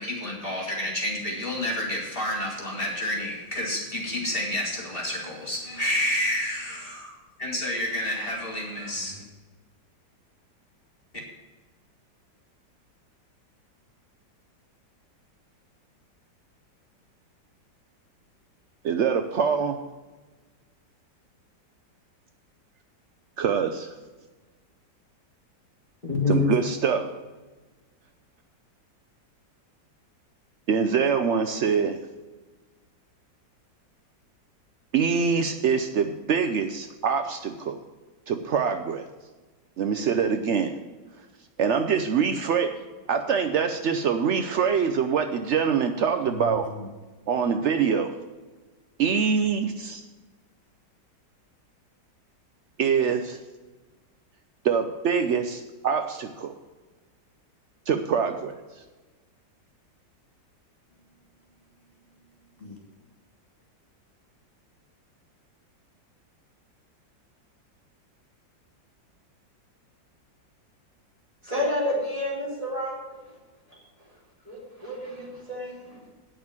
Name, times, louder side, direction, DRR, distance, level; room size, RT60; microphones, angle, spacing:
voice 1, 0.0-9.2 26.0-26.5 46.3-46.5 62.6-62.8, left 1 dB, 30° left, -1 dB, 2.3 m, -29 dB
voice 2, 18.8-19.8 23.4-23.9 26.3-27.1 30.7-32.0 34.9-37.8 38.3-39.1 39.8-40.7 41.6-42.8 43.1-46.7 47.3-48.1 49.0-50.0 52.8-53.4 54.6-56.5 57.9-58.5, right 6 dB, 75° right, 7 dB, 0.6 m, -24 dB
voice 3, 71.4-73.4 73.7-76.1, left 1 dB, 20° right, -5 dB, 3.9 m, -31 dB
9.0 x 6.2 x 8.5 m, 1.2 s
omnidirectional pair, 2.0 m